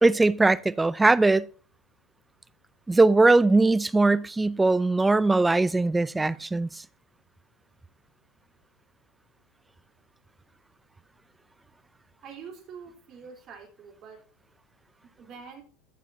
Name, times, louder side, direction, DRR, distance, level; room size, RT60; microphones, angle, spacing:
voice 1, 0.0-1.4 2.9-6.7, right 2 dB, 10° right, 0.4 m, -20 dB
voice 2, 12.2-14.2 15.2-15.6, right 6 dB, 45° right, 3.7 m, -45 dB
14.5 x 7.1 x 2.8 m
supercardioid pair, 115°, 0 cm